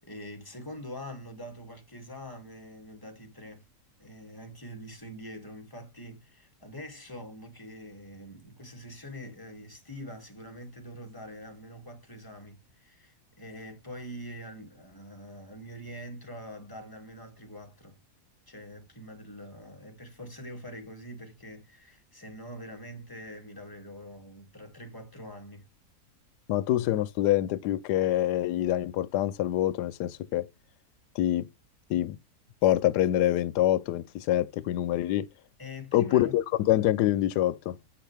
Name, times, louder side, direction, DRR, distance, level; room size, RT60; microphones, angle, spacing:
voice 1, 0.0-3.6 4.0-18.0 18.5-25.7 35.6-36.3, equal, 15° left, 2.4 m, -44 dB
voice 2, 26.5-30.5 31.2-31.5 31.9-32.2 32.6-35.3 35.9-37.7, left 13 dB, 90° left, 1.2 m, -25 dB
8.2 x 5.9 x 3.4 m
omnidirectional pair, 1.7 m